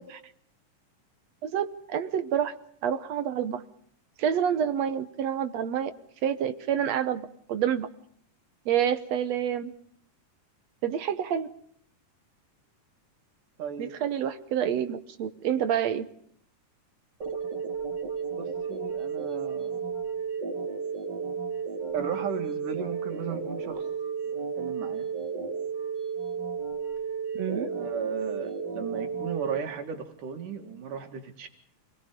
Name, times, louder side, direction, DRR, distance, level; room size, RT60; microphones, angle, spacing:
voice 1, 1.4-2.5 2.8-3.6 4.2-5.9 6.2-7.9 8.7-9.7 10.8-11.5 13.8-16.0 27.4-27.7, right 9 dB, 65° right, 11 dB, 2.1 m, -28 dB
voice 2, 13.6-13.9 18.3-19.8 21.9-23.9 24.3-25.1 27.7-31.5, right 7 dB, 85° right, 5 dB, 3.8 m, -36 dB
sound 1, 17.2-29.6, right 6 dB, 35° right, 4.2 m, -33 dB
28.0 x 21.0 x 5.2 m, 0.63 s
omnidirectional pair, 3.6 m